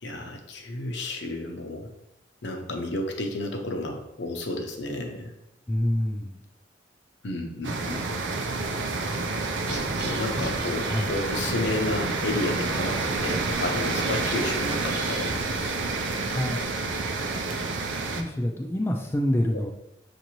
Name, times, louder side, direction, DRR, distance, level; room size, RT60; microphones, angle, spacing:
voice 1, 0.0-1.9 2.4-5.3 7.2-8.1 9.7-15.4, left 2 dB, 75° left, 3 dB, 0.7 m, -32 dB
voice 2, 5.7-6.4 10.4-10.5 10.9-11.2 16.3-16.7 18.1-19.7, left 1 dB, 15° left, 2 dB, 0.3 m, -27 dB
sound 1, 7.6-18.2, right 3 dB, 85° right, 0.5 m, -29 dB
sound 2, 9.6-16.6, right 2 dB, 70° right, 1.0 m, -41 dB
6.4 x 2.6 x 3.0 m, 0.86 s
head